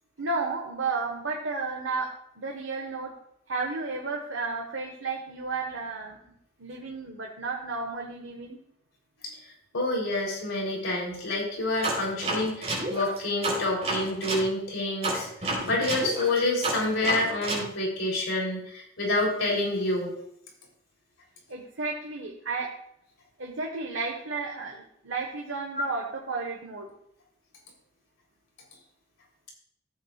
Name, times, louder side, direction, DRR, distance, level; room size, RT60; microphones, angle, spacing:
voice 1, 0.2-2.1 2.4-3.1 3.5-6.2 6.6-8.6 21.5-22.7 23.4-26.9, right 3 dB, 70° right, 0 dB, 1.3 m, -32 dB
voice 2, 9.7-20.1, left 2 dB, 75° left, -1 dB, 3.5 m, -28 dB
sound 1, 11.8-14.5 15.0-17.7, right 2 dB, 35° right, 3.8 m, -30 dB
15.0 x 8.6 x 2.4 m, 0.72 s
head